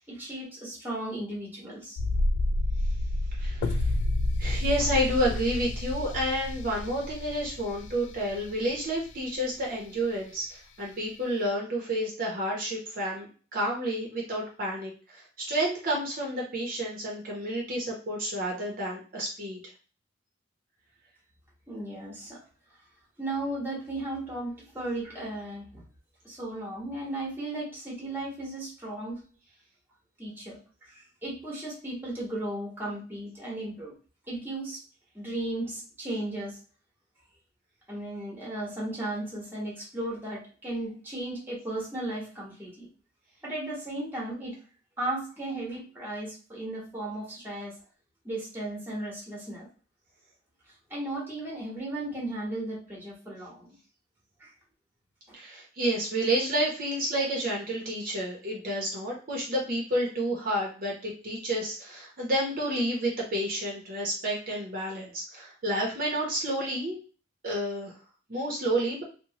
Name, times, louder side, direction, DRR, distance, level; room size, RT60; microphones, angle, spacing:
voice 1, 0.1-2.0 21.7-22.4 23.2-25.8 26.2-29.2 30.2-30.6 30.9-33.9 34.3-34.8 35.1-36.6 37.9-42.9 43.4-44.6 45.0-47.7 48.2-49.7 50.9-53.7 54.4-54.5, right 1 dB, 10° right, -4 dB, 1.0 m, -35 dB
sound 1, 2.0-8.8 9.1-9.2, left 1 dB, 75° left, 0.3 m, -29 dB
voice 2, 3.3-3.9 4.4-19.6 55.3-67.0 67.4-67.9 68.3-69.0, right 1 dB, 50° right, -2 dB, 0.6 m, -30 dB
2.9 x 2.1 x 2.8 m, 0.38 s
head